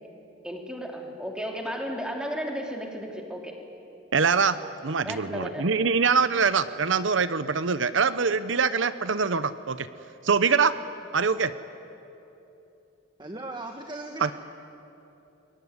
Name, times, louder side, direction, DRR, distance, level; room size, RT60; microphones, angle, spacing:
voice 1, 0.4-3.5 5.0-5.6, equal, 5° right, 1 dB, 3.2 m, -34 dB
voice 2, 4.1-4.6 4.8-9.9 10.2-10.7 11.1-11.5 14.2-14.3, right 5 dB, 75° right, 13 dB, 0.8 m, -24 dB
voice 3, 13.2-14.3, right 2 dB, 25° right, 4 dB, 1.3 m, -37 dB
28.0 x 22.0 x 9.6 m, 2.9 s
head